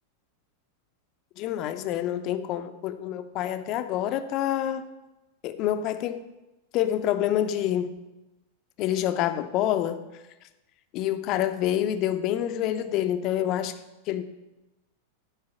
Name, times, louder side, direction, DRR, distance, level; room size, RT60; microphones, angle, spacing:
voice 1, 1.4-4.9 5.4-6.2 6.7-8.0 8.8-10.1 10.9-13.7 14.1-14.2, left 11 dB, 40° left, 10 dB, 0.6 m, -27 dB
9.0 x 4.8 x 7.2 m, 1.0 s
figure-of-eight pair, 90°, 0 cm